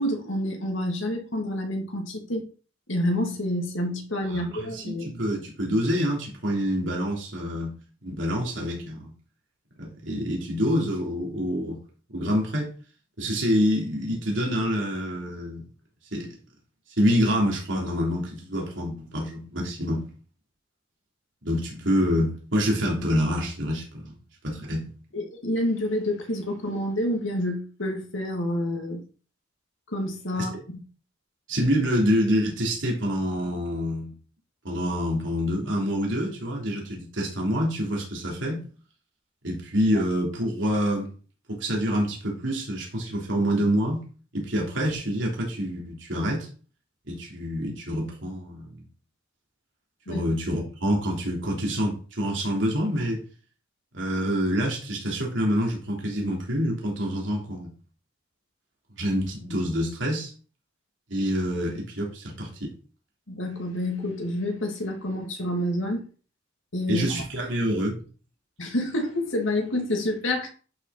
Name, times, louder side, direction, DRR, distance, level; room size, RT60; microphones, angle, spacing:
voice 1, 0.0-2.4 2.9-5.1 25.1-29.0 29.9-30.5 50.1-50.2 63.3-66.0 66.7-67.2 68.6-70.5, left 1 dB, 85° left, 2.5 m, -28 dB
voice 2, 4.3-7.7 8.0-9.1 9.8-11.8 12.1-12.7 13.2-15.6 16.1-16.3 17.0-20.1 21.4-24.2 24.4-24.9 30.3-30.4 31.5-34.1 34.6-38.6 39.4-41.1 41.5-44.0 44.3-46.5 47.1-48.8 50.1-53.2 53.9-57.7 59.0-60.3 61.1-62.7 66.9-68.0, equal, 75° right, 3.2 m, -26 dB
11.0 x 6.1 x 4.1 m
head